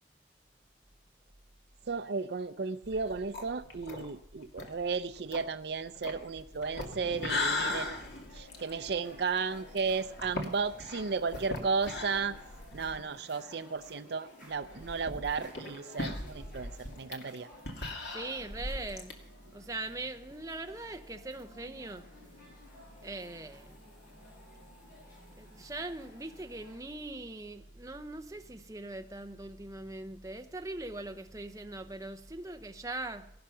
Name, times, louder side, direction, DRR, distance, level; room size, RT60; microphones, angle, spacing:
voice 1, 1.9-8.0 8.3-12.3 12.7-16.7 17.0-17.5, right 5 dB, 60° right, 0.5 m, -34 dB
sound 1, 2.8-13.1 13.4-13.5 13.8-13.9 14.6-19.1, left 2 dB, 65° left, 2.3 m, -39 dB
sound 2, 7.1-26.8, left 1 dB, 45° left, 6.6 m, -55 dB
voice 2, 18.1-19.2 19.5-22.1 23.0-23.8 25.4-33.3, right 2 dB, 15° right, 0.8 m, -41 dB
17.0 x 12.0 x 5.6 m
head